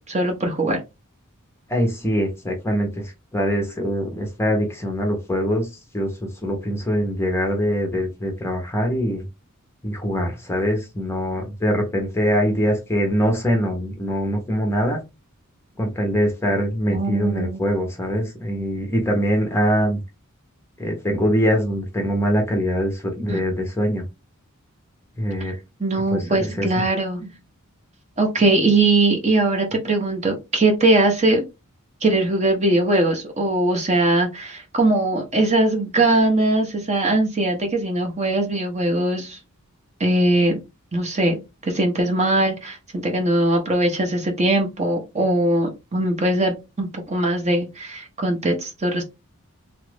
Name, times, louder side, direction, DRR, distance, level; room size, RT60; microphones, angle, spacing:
voice 1, 0.1-0.8 16.9-17.6 23.3-23.4 25.8-27.3 28.2-31.4 32.0-39.4 40.0-40.6 40.9-41.4 41.6-49.0, right 2 dB, 30° right, 3 dB, 0.7 m, -20 dB
voice 2, 1.7-5.7 5.9-9.3 9.8-15.0 15.8-20.0 20.8-24.0 25.2-25.5 26.1-26.8, equal, 10° left, 2 dB, 0.7 m, -23 dB
3.0 x 2.4 x 3.2 m, 0.25 s
head